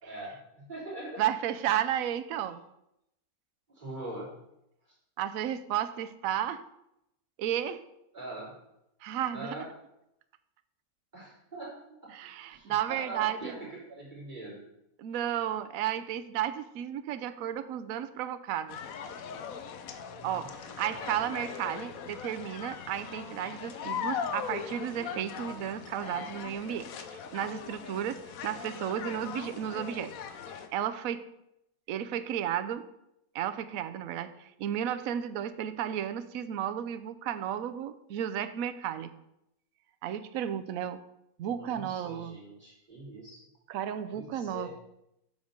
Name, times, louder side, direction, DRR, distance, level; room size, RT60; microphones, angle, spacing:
voice 1, 0.0-1.2 3.7-4.3 8.1-8.5 9.3-9.7 11.1-11.7 12.5-14.6 20.1-20.5 20.9-21.3 41.5-43.4 44.1-44.7, right 2 dB, 30° right, -6 dB, 3.3 m, -42 dB
voice 2, 1.2-2.6 5.2-6.6 7.4-7.8 9.0-9.5 12.1-13.5 15.0-18.8 20.2-26.9 27.3-30.1 30.7-31.3 31.9-32.9 33.3-39.1 40.0-41.0 41.4-42.4 43.7-44.7, right 10 dB, 70° right, 10 dB, 1.0 m, -33 dB
sound 1, 18.7-30.7, left 7 dB, 70° left, 1.2 m, -40 dB
7.0 x 5.3 x 6.3 m, 0.82 s
omnidirectional pair, 1.5 m